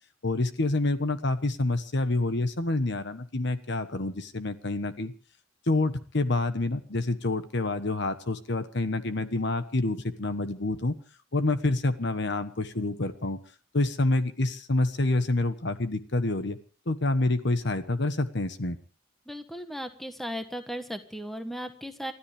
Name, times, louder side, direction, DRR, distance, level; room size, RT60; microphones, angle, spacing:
voice 1, 0.2-5.1 5.7-10.9 11.3-13.4 13.7-16.6 16.9-18.8, left 2 dB, 55° left, 11 dB, 1.2 m, -27 dB
voice 2, 19.3-22.1, equal, ahead, 8 dB, 1.3 m, -36 dB
29.5 x 13.0 x 3.5 m, 0.39 s
head